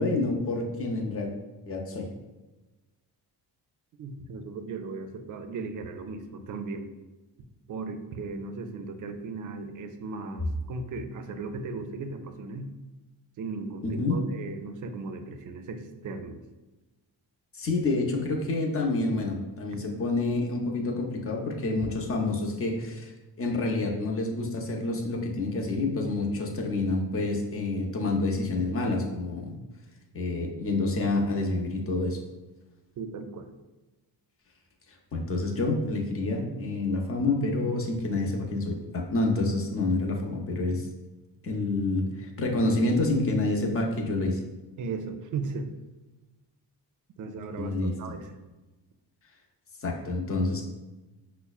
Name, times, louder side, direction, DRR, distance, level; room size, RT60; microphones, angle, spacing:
voice 1, 0.0-1.3 1.7-2.1 13.8-14.2 17.5-23.1 23.4-29.5 30.1-32.2 35.1-40.9 41.4-44.4 47.6-47.9 49.8-50.6, left 2 dB, 35° left, 1 dB, 0.7 m, -28 dB
voice 2, 4.0-6.9 7.7-12.7 13.4-16.4 33.0-33.5 44.8-45.7 47.2-48.3, right 4 dB, 50° right, 7 dB, 0.4 m, -37 dB
5.4 x 2.1 x 2.3 m, 1.1 s
cardioid pair, 95°, 40 cm